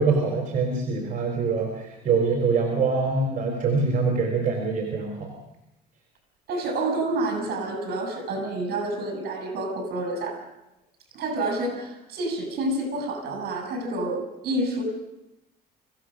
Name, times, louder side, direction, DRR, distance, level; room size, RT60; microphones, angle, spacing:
voice 1, 0.0-5.3, right 4 dB, 50° right, 1 dB, 4.2 m, -24 dB
voice 2, 6.5-10.4 11.1-14.8, right 2 dB, 70° right, 5 dB, 6.8 m, -28 dB
25.0 x 16.0 x 6.5 m, 0.91 s
cardioid pair, 110°, 17 cm